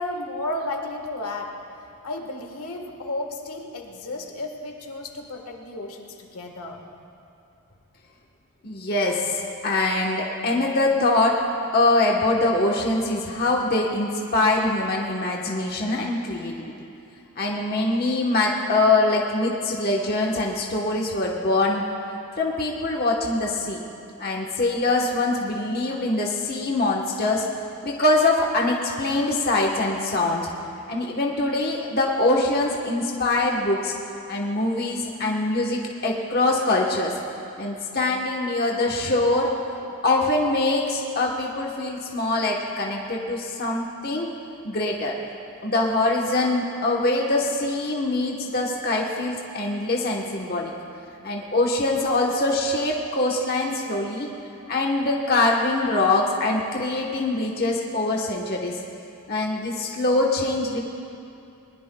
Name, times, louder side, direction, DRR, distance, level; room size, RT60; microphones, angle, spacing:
voice 1, 0.0-1.5 2.0-6.8, left 2 dB, 75° left, 2 dB, 1.5 m, -33 dB
voice 2, 8.6-11.4 11.7-16.7 17.4-21.8 22.4-23.8 24.2-27.4 27.8-30.5 30.9-33.9 34.3-37.1 37.6-39.5 40.0-44.3 44.6-45.1 45.6-50.7 51.2-54.3 54.7-58.7 59.3-60.8, left 2 dB, 45° left, -2 dB, 1.1 m, -23 dB
21.0 x 20.5 x 2.3 m, 2.6 s
head